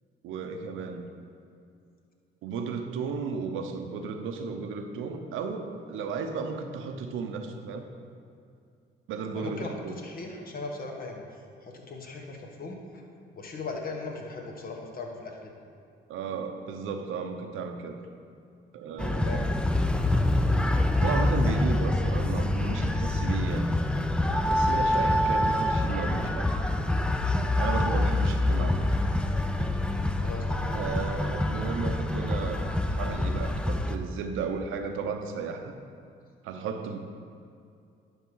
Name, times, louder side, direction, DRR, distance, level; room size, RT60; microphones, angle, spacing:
voice 1, 0.2-1.1 2.4-7.8 9.1-10.0 16.1-18.0 18.7-19.5 21.0-23.7 24.5-26.5 27.6-28.9 30.7-35.7 36.4-37.0, right 5 dB, 90° right, 6 dB, 0.7 m, -34 dB
voice 2, 9.4-11.2 11.6-13.0 13.4-15.5 19.1-19.5 30.2-30.8, left 3 dB, 45° left, 2 dB, 1.3 m, -38 dB
sound 1, 19.0-34.0, left 1 dB, 5° left, 0.4 m, -26 dB
10.5 x 3.6 x 6.2 m, 2.4 s
cardioid pair, 90°, 20 cm